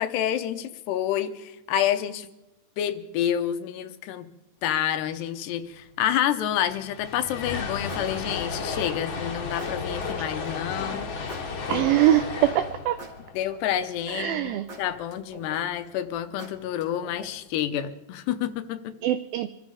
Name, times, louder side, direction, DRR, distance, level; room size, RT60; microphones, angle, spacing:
voice 1, 0.0-2.3 2.8-4.3 4.6-11.1 11.7-11.9 13.3-14.4 14.8-18.9, left 11 dB, 85° left, 10 dB, 3.0 m, -28 dB
sound 1, 6.0-6.1 6.2-14.5, left 4 dB, 35° left, 2.5 m, -34 dB
sound 2, 7.0-7.3 7.9-9.0 9.6-10.5 11.3-12.4 13.0-14.1 14.7-15.8 16.4-17.5, right 2 dB, 30° right, 2.3 m, -44 dB
voice 2, 11.7-13.0 14.1-14.7 19.0-19.5, right 13 dB, 85° right, 12 dB, 2.1 m, -23 dB
26.5 x 14.0 x 3.6 m, 1.0 s
omnidirectional pair, 4.9 m